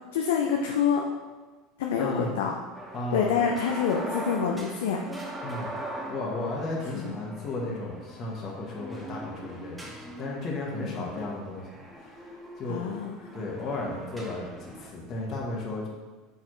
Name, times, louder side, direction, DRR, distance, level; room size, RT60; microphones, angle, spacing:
voice 1, 0.1-1.0 1.8-2.5 3.1-5.0 6.9-7.2 10.8-11.1 12.7-13.1, left 6 dB, 80° left, 1 dB, 0.5 m, -27 dB
voice 2, 2.0-2.3 2.9-3.3 5.4-5.7 6.1-11.6 12.6-12.9 13.3-15.9, left 2 dB, 45° left, -3 dB, 1.4 m, -34 dB
sound 1, 2.7-14.9, right 1 dB, 10° right, 1.2 m, -41 dB
6.8 x 4.5 x 3.1 m, 1.3 s
hypercardioid pair, 95°, 0 cm